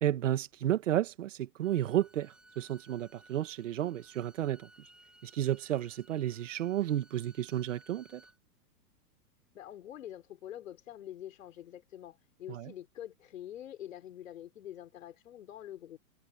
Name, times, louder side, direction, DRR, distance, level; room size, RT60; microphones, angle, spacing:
voice 1, 0.0-4.7 5.2-8.2 12.5-12.7, right 12 dB, 55° right, 1.8 m, -32 dB
Bowed string instrument, 1.6-8.4, right 1 dB, ahead, 3.6 m, -61 dB
voice 2, 9.5-16.0, left 11 dB, 55° left, 4.1 m, -46 dB
hypercardioid pair, 175°, 46 cm